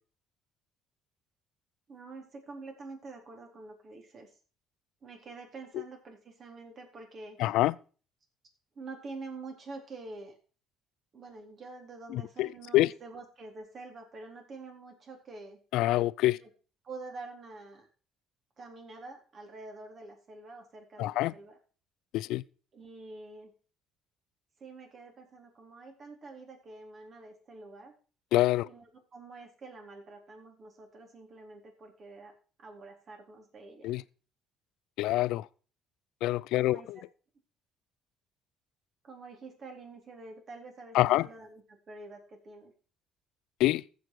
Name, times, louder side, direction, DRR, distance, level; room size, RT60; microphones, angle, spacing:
voice 1, 1.9-4.3 5.0-7.5 8.8-10.3 11.1-15.6 16.3-16.5 16.8-17.9 18.6-21.6 22.7-23.5 24.6-27.9 28.6-32.3 32.6-34.0 36.6-37.0 39.0-42.7, right 3 dB, 50° right, 3.9 m, -47 dB
voice 2, 7.4-7.7 12.1-12.5 12.7-12.9 15.7-16.4 21.0-21.3 22.1-22.4 28.3-28.7 33.8-34.0 35.0-35.5 36.2-37.0 40.9-41.3 43.6-43.8, left 16 dB, 70° left, 0.4 m, -26 dB
14.5 x 6.8 x 4.7 m
hypercardioid pair, 60°, 0 cm